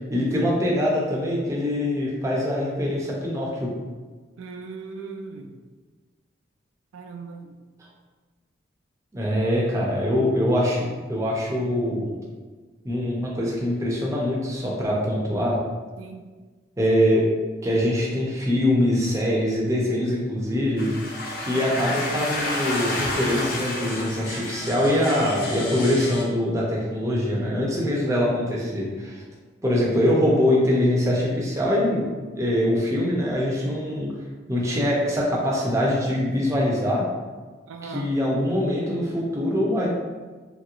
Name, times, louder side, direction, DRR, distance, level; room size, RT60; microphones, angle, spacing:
voice 1, 0.1-3.7 9.1-12.2 12.8-15.6 16.8-17.3 17.6-29.2 29.6-32.1 32.3-34.1 34.5-37.1 37.8-39.9, left 1 dB, 15° right, -4 dB, 0.5 m, -23 dB
voice 2, 4.4-5.6 6.9-7.6 16.0-16.3 37.7-38.1, right 4 dB, 90° right, 4 dB, 0.3 m, -38 dB
sound 1, 20.8-26.2, left 1 dB, 50° left, 0.5 m, -30 dB
2.9 x 2.9 x 2.4 m, 1.4 s
head